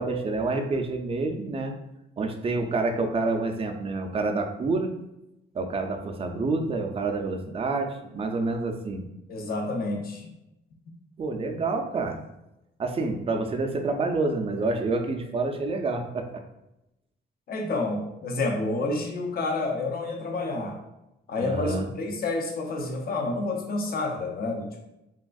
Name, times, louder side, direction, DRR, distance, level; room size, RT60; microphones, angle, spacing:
voice 1, 0.0-1.7 2.2-4.9 5.5-9.0 11.2-12.2 12.8-16.4 21.4-21.9, right 3 dB, 30° right, 4 dB, 0.4 m, -28 dB
voice 2, 9.3-10.3 17.5-20.8 21.3-24.8, left 2 dB, 50° left, 2 dB, 0.6 m, -29 dB
3.4 x 2.4 x 2.3 m, 0.91 s
cardioid pair, 90°, 20 cm